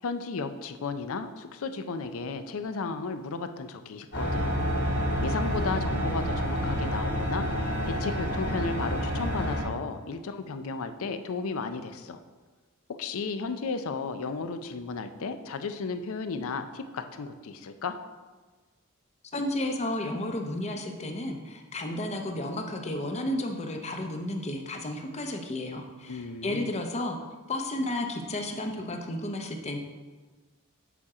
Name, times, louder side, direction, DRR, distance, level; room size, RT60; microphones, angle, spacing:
voice 1, 0.0-4.6 5.2-12.2 12.9-18.0 26.1-26.7, left 4 dB, 65° left, 9 dB, 0.5 m, -34 dB
sound 1, 4.1-9.6, equal, 45° left, 2.0 m, -28 dB
voice 2, 19.3-27.2 27.5-29.8, left 1 dB, 30° left, 4 dB, 0.7 m, -32 dB
7.1 x 4.3 x 4.8 m, 1.3 s
head